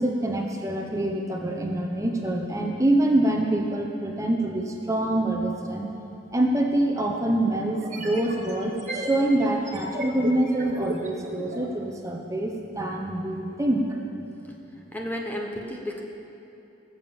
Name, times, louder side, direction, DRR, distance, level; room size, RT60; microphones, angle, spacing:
voice 1, 0.0-5.9 6.3-13.9, right 1 dB, 15° right, 1 dB, 1.0 m, -25 dB
sound 1, 6.3-6.4 7.7-11.7, right 1 dB, 45° right, 1.9 m, -35 dB
voice 2, 14.9-16.0, left 1 dB, 10° left, 0 dB, 1.0 m, -32 dB
17.5 x 7.3 x 7.2 m, 3.0 s
head